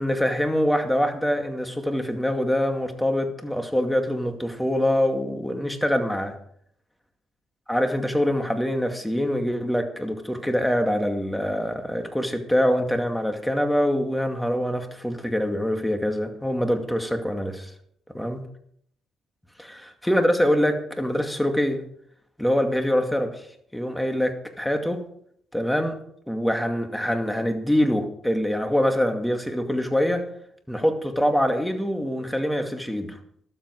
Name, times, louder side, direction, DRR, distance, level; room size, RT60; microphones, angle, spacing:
voice 1, 0.0-6.3 7.7-17.7 18.1-18.4 20.0-21.8 22.4-23.5 23.7-25.0 25.5-26.0 26.3-30.3 30.7-33.2, equal, 5° left, 5 dB, 2.4 m, -24 dB
13.0 x 12.5 x 4.8 m, 0.67 s
cardioid pair, 90°, 0 cm